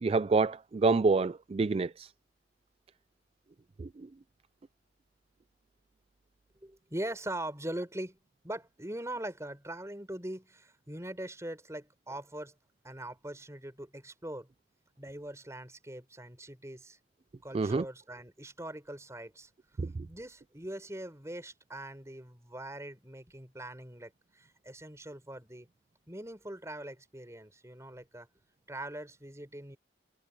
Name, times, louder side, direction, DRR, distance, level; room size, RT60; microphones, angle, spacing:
voice 1, 0.0-2.1 3.8-3.9 17.5-17.8 19.8-20.1, right 3 dB, 35° right, 0.3 m, -27 dB
voice 2, 6.6-8.2 8.4-12.5 12.8-14.5 15.0-17.0 17.4-19.5 20.1-25.7 26.1-28.3 28.7-29.8, right 1 dB, 15° right, 4.7 m, -42 dB
head